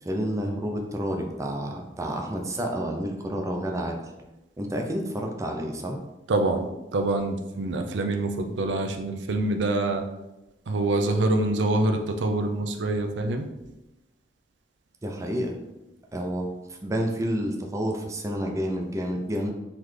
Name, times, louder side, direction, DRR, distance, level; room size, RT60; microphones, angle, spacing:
voice 1, 0.0-4.0 4.6-6.0 15.0-15.6 16.1-19.5, equal, 20° right, 2 dB, 0.5 m, -29 dB
voice 2, 6.3-10.0 10.7-13.5, right 2 dB, 85° right, 5 dB, 0.5 m, -25 dB
3.9 x 3.2 x 3.2 m, 0.97 s
head